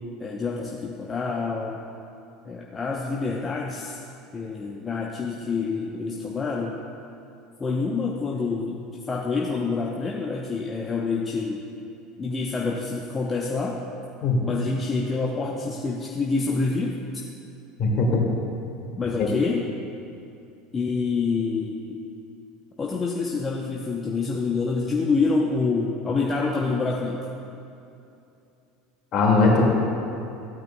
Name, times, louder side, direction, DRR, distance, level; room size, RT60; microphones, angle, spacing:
voice 1, 0.2-1.8 2.4-4.0 4.3-6.8 7.6-11.6 12.2-13.8 14.4-17.2 18.9-19.6 20.7-22.0 22.8-27.3, left 4 dB, 25° left, -1 dB, 0.8 m, -27 dB
voice 2, 17.8-18.3 19.2-19.3 29.1-29.6, left 3 dB, 45° left, -1 dB, 2.0 m, -20 dB
14.5 x 8.9 x 2.2 m, 2.7 s
figure-of-eight pair, 70°, 0 cm